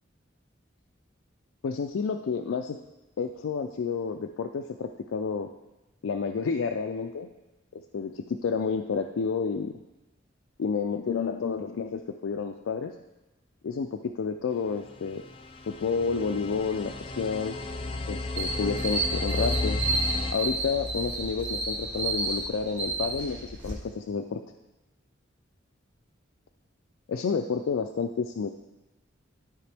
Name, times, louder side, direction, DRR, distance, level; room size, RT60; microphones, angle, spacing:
voice 1, 1.6-2.8 3.2-5.5 6.0-7.3 7.7-9.7 10.6-12.9 13.6-15.2 15.7-17.5 18.1-19.8 20.3-24.4 27.1-28.5, left 5 dB, 85° left, 5 dB, 0.4 m, -30 dB
sound 1, 14.9-20.3, left 2 dB, 25° left, 0.5 m, -33 dB
sound 2, 18.4-23.7, right 2 dB, 65° right, 2.3 m, -31 dB
12.5 x 5.0 x 3.4 m, 1.1 s
head